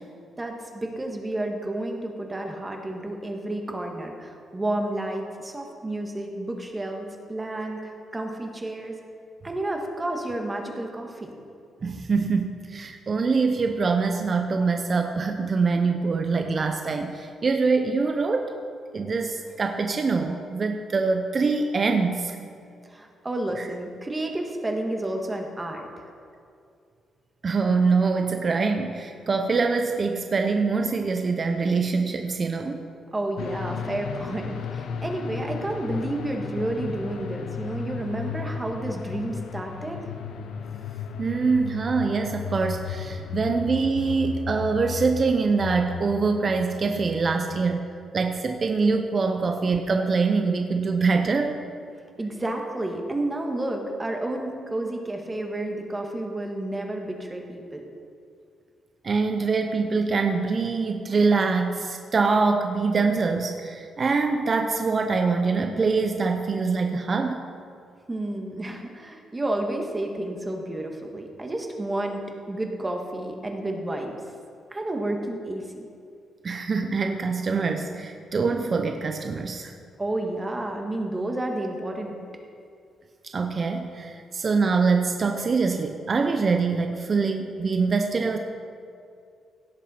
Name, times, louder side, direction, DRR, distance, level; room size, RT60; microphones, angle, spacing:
voice 1, 0.4-9.0 9.4-11.3 22.9-26.0 33.1-40.0 43.2-43.3 52.2-57.8 68.1-72.2 72.5-74.2 74.7-75.7 80.0-82.2, right 1 dB, 20° right, 2 dB, 1.4 m, -31 dB
voice 2, 11.8-18.5 18.9-22.4 27.4-32.8 41.2-47.9 48.1-51.6 59.0-67.4 76.4-79.7 83.3-88.4, right 4 dB, 40° right, 5 dB, 0.6 m, -24 dB
sound 1, 33.4-47.7, left 6 dB, 75° left, 0.7 m, -35 dB
16.5 x 7.3 x 4.3 m, 2.4 s
cardioid pair, 115°, 0 cm